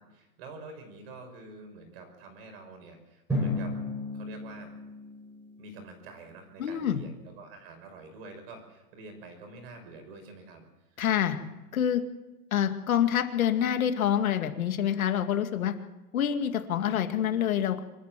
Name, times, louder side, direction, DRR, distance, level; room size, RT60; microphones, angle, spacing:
voice 1, 0.0-3.8 4.1-4.7 5.6-10.6 10.9-11.0, right 3 dB, 40° right, 7 dB, 5.9 m, -47 dB
Drum, 3.3-6.0, left 1 dB, 5° right, 6.1 m, -34 dB
voice 2, 6.6-7.0 11.0-11.4 11.7-12.0 12.5-15.7 16.1-17.8, left 9 dB, 65° left, 7 dB, 2.2 m, -26 dB
26.0 x 13.5 x 7.6 m, 1.1 s
hypercardioid pair, 165°, 45 cm